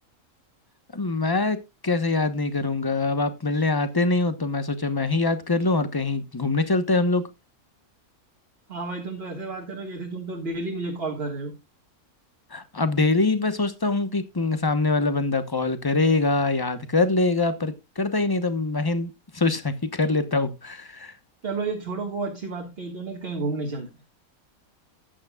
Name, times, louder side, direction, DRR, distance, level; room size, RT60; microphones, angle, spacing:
voice 1, 0.9-1.6 1.8-7.2 12.5-21.1, left 3 dB, 20° left, 0.9 m, -24 dB
voice 2, 8.7-11.5 21.4-23.9, right 3 dB, 45° right, 1.8 m, -31 dB
14.0 x 9.5 x 2.3 m
omnidirectional pair, 1.5 m